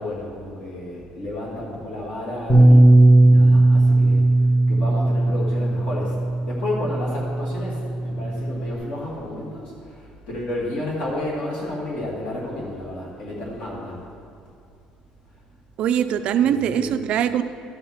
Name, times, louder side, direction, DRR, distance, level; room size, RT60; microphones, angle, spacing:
voice 1, 0.0-4.3 4.7-6.2 6.4-14.0 16.4-16.9, left 1 dB, 50° left, -4 dB, 2.1 m, -31 dB
Bass guitar, 2.5-8.7, right 2 dB, 10° left, 1.0 m, -17 dB
voice 2, 15.8-17.4, right 9 dB, 50° right, 10 dB, 0.4 m, -22 dB
13.0 x 5.4 x 5.8 m, 2.4 s
cardioid pair, 175°, 3 cm